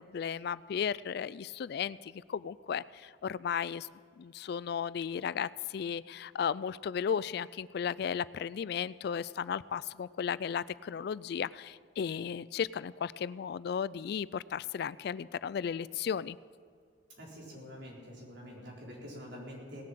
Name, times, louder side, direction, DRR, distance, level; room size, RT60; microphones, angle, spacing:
voice 1, 0.0-3.9 4.2-16.4, left 7 dB, 60° left, 19 dB, 0.3 m, -35 dB
voice 2, 17.2-19.8, equal, 75° right, -3 dB, 4.0 m, -46 dB
18.5 x 7.6 x 7.5 m, 2.2 s
head